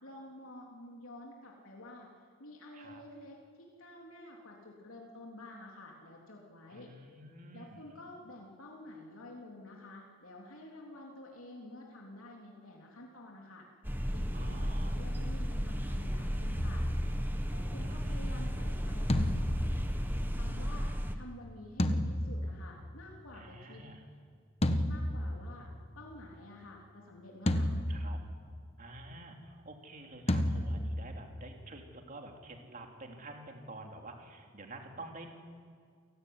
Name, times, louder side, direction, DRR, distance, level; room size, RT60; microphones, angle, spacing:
voice 1, 0.0-6.9 7.5-13.7 14.1-16.9 17.5-19.3 20.3-23.8 24.8-27.8, left 1 dB, 80° left, -1 dB, 3.5 m, -50 dB
voice 2, 2.7-3.0 6.7-7.8 14.3-15.0 17.8-18.4 23.3-24.0 27.9-28.2 28.8-35.3, right 2 dB, 40° right, 2 dB, 3.4 m, -49 dB
sound 1, 13.8-21.2, equal, 10° right, 1.3 m, -34 dB
sound 2, 16.6-17.9 19.1-20.8 21.8-23.1 24.6-26.0 27.5-28.6 30.3-31.7, left 1 dB, 30° left, 1.2 m, -33 dB
29.0 x 17.0 x 9.7 m, 2.1 s
head